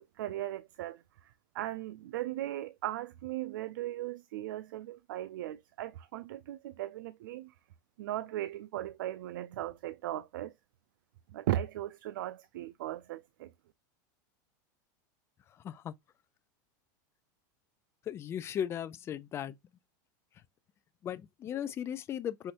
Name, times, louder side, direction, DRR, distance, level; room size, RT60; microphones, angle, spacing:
voice 1, 0.0-7.5 8.0-10.5 11.3-13.5, right 14 dB, 85° right, 0.4 m, -38 dB
voice 2, 15.5-15.9 18.0-19.6 21.0-22.5, left 9 dB, 25° left, 0.4 m, -37 dB
5.7 x 3.1 x 2.8 m
supercardioid pair, 140°, 11 cm